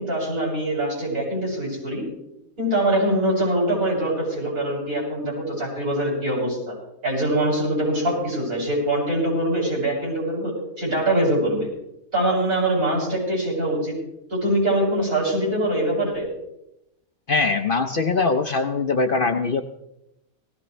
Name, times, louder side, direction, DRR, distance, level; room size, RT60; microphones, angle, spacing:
voice 1, 0.0-2.1 2.6-6.7 7.0-11.7 12.1-14.0 14.3-16.3, right 1 dB, 80° right, -4 dB, 7.6 m, -23 dB
voice 2, 17.3-19.6, left 3 dB, 50° left, 7 dB, 0.7 m, -22 dB
18.5 x 16.0 x 3.3 m, 0.85 s
omnidirectional pair, 1.5 m